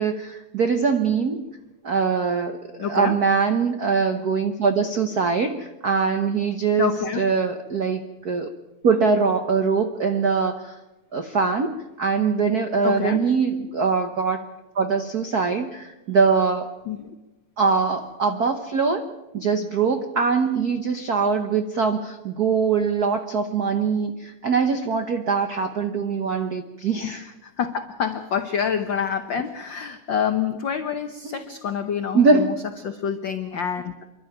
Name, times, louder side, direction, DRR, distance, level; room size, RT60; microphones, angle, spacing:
voice 1, 0.0-1.5 1.8-6.9 7.2-8.5 8.8-10.8 11.1-14.4 14.7-16.7 17.6-19.0 19.3-27.2 32.1-32.5, right 5 dB, 80° right, 7 dB, 0.8 m, -22 dB
voice 2, 2.8-3.1 6.8-7.2 12.8-13.2 16.9-17.1 27.0-32.5 32.8-34.1, left 7 dB, 85° left, 8 dB, 1.0 m, -27 dB
28.0 x 12.0 x 9.0 m, 1.0 s
omnidirectional pair, 3.4 m